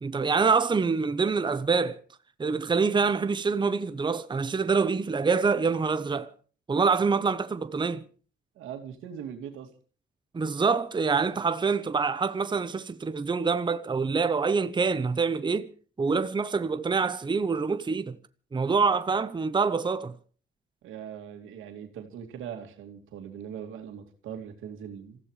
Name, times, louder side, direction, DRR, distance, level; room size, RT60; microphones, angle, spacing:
voice 1, 0.0-2.0 2.4-6.3 6.7-8.0 10.3-15.7 16.0-18.2 18.5-20.1, right 5 dB, 25° right, 0.9 m, -26 dB
voice 2, 8.6-9.7 20.8-25.2, right 8 dB, 90° right, 2.6 m, -40 dB
26.5 x 15.5 x 3.3 m
cardioid pair, 90°, 20 cm